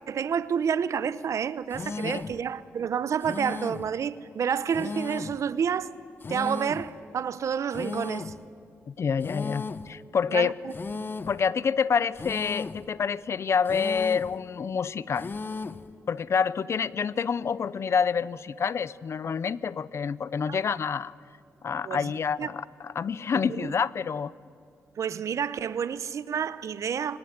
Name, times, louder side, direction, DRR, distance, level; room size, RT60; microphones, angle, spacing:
voice 1, 0.1-5.9 6.3-8.3 10.3-10.7 20.5-20.6 21.8-22.1 22.4-22.5 23.5-23.7 25.0-27.2, right 7 dB, 65° right, 0.8 m, -29 dB
sound 1, 1.7-2.4 3.2-3.9 4.7-5.4 6.2-6.9 7.7-8.4 9.2-9.9 10.7-11.4 12.2-12.9 13.7-14.4 15.2-15.9, left 4 dB, 40° left, 1.0 m, -36 dB
voice 2, 8.9-10.6 11.3-15.3 16.1-21.1 21.6-24.3, left 6 dB, 55° left, 0.6 m, -27 dB
24.0 x 17.5 x 9.5 m
cardioid pair, 80°, 6 cm